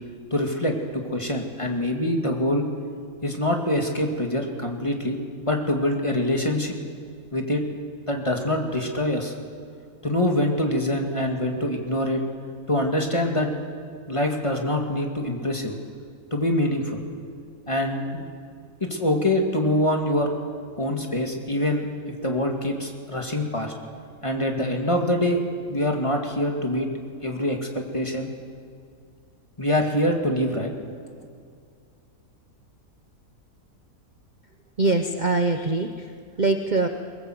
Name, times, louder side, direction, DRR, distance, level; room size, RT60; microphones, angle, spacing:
voice 1, 0.3-2.7 3.2-6.8 7.3-7.6 8.1-9.4 10.0-12.2 12.7-13.5 14.1-15.8 16.3-17.0 17.7-18.2 18.8-20.3 20.8-21.9 22.2-23.7 24.2-25.4 25.7-26.9 27.2-28.3 29.6-30.7, left 1 dB, 20° left, 2 dB, 2.1 m, -24 dB
voice 2, 34.8-36.9, right 3 dB, 35° right, 6 dB, 0.9 m, -23 dB
23.0 x 19.5 x 7.8 m, 2.2 s
omnidirectional pair, 1.6 m